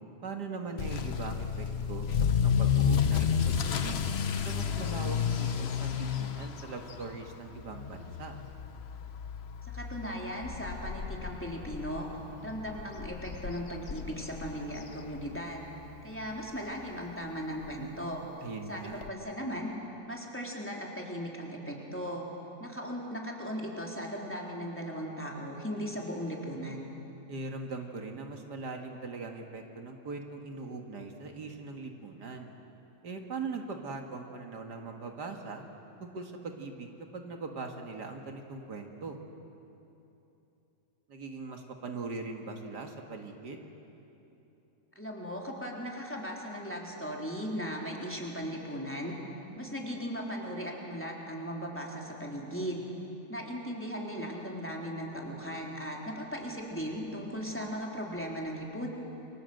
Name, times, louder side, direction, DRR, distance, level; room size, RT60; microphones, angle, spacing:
voice 1, 0.2-4.0 4.4-8.4 18.4-19.0 27.3-32.5 33.0-35.6 36.0-39.2 41.1-43.6, right 3 dB, 75° right, 3 dB, 2.4 m, -40 dB
Motor vehicle (road) / Accelerating revving vroom, 0.8-15.6 15.9-16.3 16.8-16.9 17.2-17.3 17.6-17.7 19.0-19.1, left 7 dB, 45° left, 0.9 m, -32 dB
voice 2, 9.6-12.1 12.4-15.7 16.0-18.2 18.7-19.7 20.1-22.2 22.6-26.9 45.0-49.1 49.6-52.9 53.3-58.9, equal, 5° left, -2 dB, 3.6 m, -37 dB
29.5 x 24.0 x 7.9 m, 2.9 s
omnidirectional pair, 1.8 m